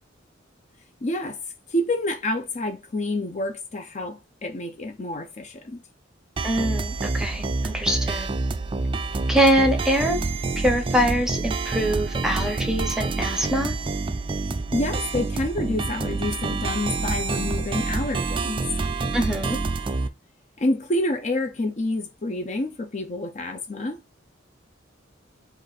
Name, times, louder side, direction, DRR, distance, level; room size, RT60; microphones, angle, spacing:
voice 1, 1.0-1.4 1.7-5.8 14.5-18.7 20.6-24.0, left 1 dB, 40° left, 0.6 m, -28 dB
voice 2, 6.4-8.3 9.3-10.2 10.6-13.7 19.1-19.6, equal, 5° right, 1.0 m, -23 dB
sound 1, 6.4-20.1, right 3 dB, 25° right, 0.4 m, -27 dB
5.1 x 2.5 x 4.1 m
head